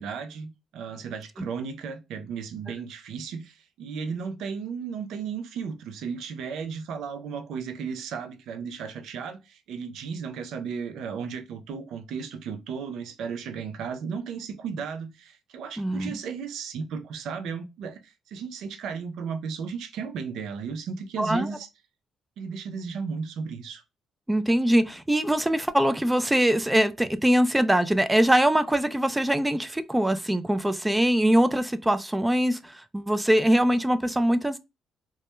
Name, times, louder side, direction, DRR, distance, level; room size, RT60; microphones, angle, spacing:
voice 1, 0.0-21.7 22.4-23.8, right 6 dB, 80° right, 0.4 m, -35 dB
voice 2, 15.8-16.2 21.2-21.5 24.3-34.6, right 1 dB, 10° right, 0.3 m, -23 dB
2.2 x 2.1 x 2.9 m
cardioid pair, 90°, 0 cm